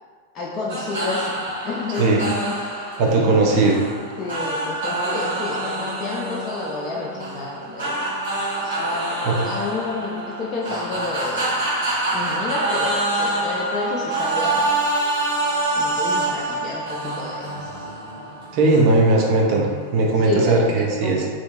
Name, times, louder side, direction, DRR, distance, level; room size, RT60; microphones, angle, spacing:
voice 1, 0.3-1.4 1.6-2.6 4.2-8.1 8.6-11.5 12.1-14.7 15.8-17.7 20.2-21.3, left 4 dB, 30° left, -4 dB, 0.3 m, -30 dB
sound 1, 0.7-20.2, right 2 dB, 70° right, 1.0 m, -26 dB
voice 2, 3.0-3.9 9.2-9.5 18.5-21.3, right 2 dB, 45° right, -1 dB, 0.4 m, -18 dB
2.7 x 2.1 x 2.4 m, 1.5 s
figure-of-eight pair, 90°, 0 cm